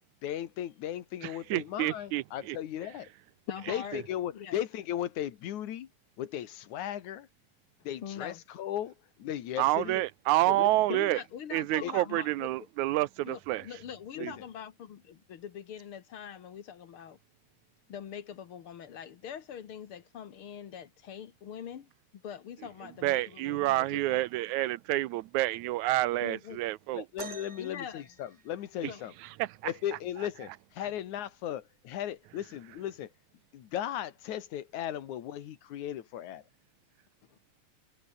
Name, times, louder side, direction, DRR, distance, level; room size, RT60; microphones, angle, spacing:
voice 1, 0.2-3.1 3.7-5.9 6.2-7.3 7.8-10.1 10.5-11.0 11.8-11.9 14.2-14.3 26.9-29.1 29.6-33.1 33.5-36.4, left 11 dB, 80° left, 2.9 m, -36 dB
voice 2, 1.5-2.6 9.6-11.2 11.5-13.6 14.2-14.3 23.0-27.0 29.4-29.5, right 17 dB, 85° right, 2.1 m, -28 dB
voice 3, 3.5-4.0 4.3-4.6 8.0-8.4 10.9-12.7 13.2-17.2 17.9-24.3 26.2-26.6 27.6-28.1 28.9-29.0 37.3-37.4, left 8 dB, 55° left, 2.0 m, -43 dB
sound 1, 27.2-29.1 30.7-30.8 31.6-31.9 32.8-32.9, right 4 dB, 30° right, 2.1 m, -46 dB
omnidirectional pair, 3.3 m